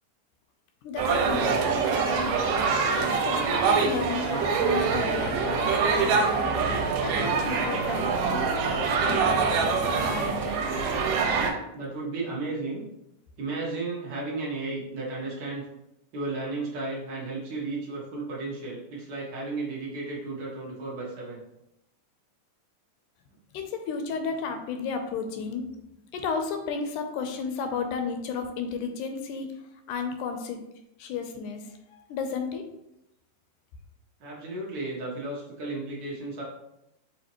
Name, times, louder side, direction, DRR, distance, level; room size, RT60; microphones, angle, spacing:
voice 1, 0.8-2.5 2.9-6.2 7.0-10.8 23.5-25.7 26.1-29.5 29.9-30.6 31.0-32.6, left 5 dB, 80° left, 5 dB, 1.9 m, -33 dB
sound 1, 1.0-11.5, right 5 dB, 85° right, 2.2 m, -25 dB
voice 2, 11.7-12.8 13.4-15.7 16.1-21.4 34.2-36.4, right 3 dB, 70° right, -5 dB, 1.0 m, -34 dB
6.3 x 2.9 x 2.9 m, 0.84 s
omnidirectional pair, 3.7 m